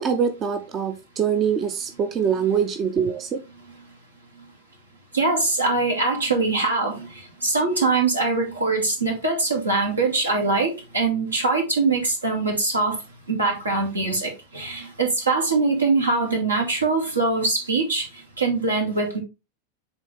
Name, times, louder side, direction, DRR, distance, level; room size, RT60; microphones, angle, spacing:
voice 1, 0.0-3.4, right 7 dB, 30° right, 0.6 m, -24 dB
voice 2, 5.1-7.1 7.4-13.0 13.3-18.0 18.4-19.2, right 3 dB, 80° right, 2.2 m, -22 dB
8.0 x 3.5 x 3.3 m
figure-of-eight pair, 90°, 0 cm